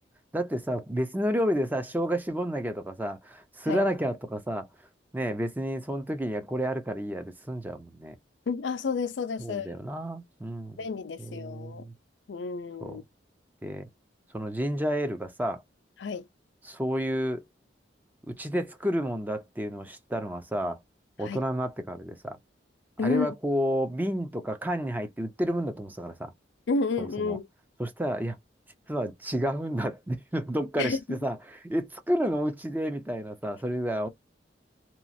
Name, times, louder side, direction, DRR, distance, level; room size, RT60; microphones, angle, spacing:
voice 1, 0.3-4.7 5.1-8.2 9.4-10.8 11.2-11.9 12.8-13.0 13.6-13.9 14.3-15.6 16.6-17.4 18.3-20.8 21.2-22.4 23.0-26.3 27.0-27.4 27.8-28.4 28.9-34.1, equal, 10° right, 0.5 m, -30 dB
voice 2, 8.5-9.7 10.8-11.8 12.3-13.0 16.0-16.2 21.2-21.4 23.0-23.3 26.7-27.4 30.8-31.2, left 4 dB, 75° left, 0.4 m, -30 dB
2.9 x 2.4 x 2.5 m
head